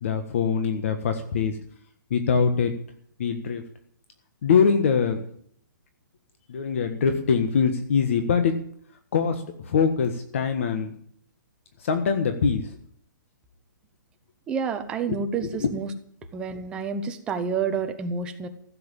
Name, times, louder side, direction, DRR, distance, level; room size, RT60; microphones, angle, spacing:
voice 1, 0.0-1.6 2.1-2.7 3.2-3.6 4.4-5.2 6.5-8.5 9.1-10.9 11.8-12.7 15.5-15.7, left 6 dB, 40° left, 7 dB, 1.5 m, -23 dB
voice 2, 14.5-15.9 16.3-18.5, right 6 dB, 10° right, 6 dB, 0.8 m, -29 dB
15.5 x 7.8 x 8.9 m, 0.62 s
hypercardioid pair, 175°, 11 cm